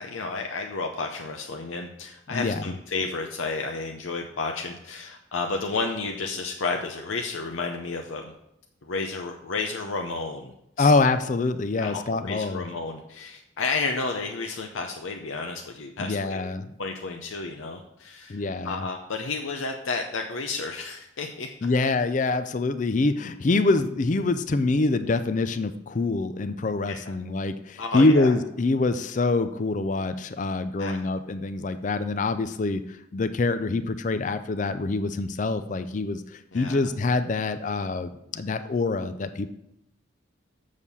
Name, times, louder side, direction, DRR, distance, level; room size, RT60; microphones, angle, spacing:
voice 1, 0.0-8.3 8.8-10.9 11.8-16.4 16.8-21.5 27.1-27.2 27.8-28.3 30.8-31.0 36.5-36.8, left 4 dB, 80° left, 3 dB, 0.7 m, -31 dB
voice 2, 2.3-2.6 10.8-12.6 16.0-16.7 18.3-18.8 21.6-39.5, left 3 dB, 40° left, 11 dB, 0.4 m, -25 dB
7.3 x 6.5 x 5.3 m, 0.79 s
head